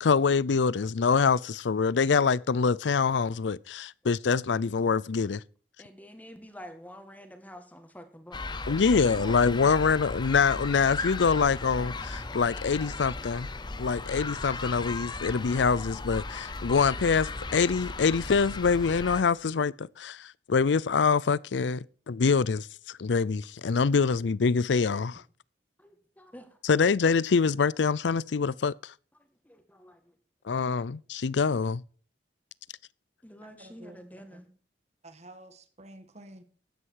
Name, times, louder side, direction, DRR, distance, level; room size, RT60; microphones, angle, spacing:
voice 1, 0.0-5.4 8.7-13.5 13.8-25.2 26.6-28.9 30.5-31.8, left 5 dB, 90° left, 0.5 m, -25 dB
voice 2, 5.8-8.8 9.2-9.4 25.8-26.6 29.2-30.1 33.2-34.5, equal, 10° left, 2.0 m, -48 dB
sound 1, 8.3-19.2, left 3 dB, 25° left, 0.8 m, -36 dB
voice 3, 8.9-9.9 33.4-34.0 34.3-34.4 35.0-36.4, right 2 dB, 40° right, 1.7 m, -48 dB
13.5 x 9.9 x 4.7 m
head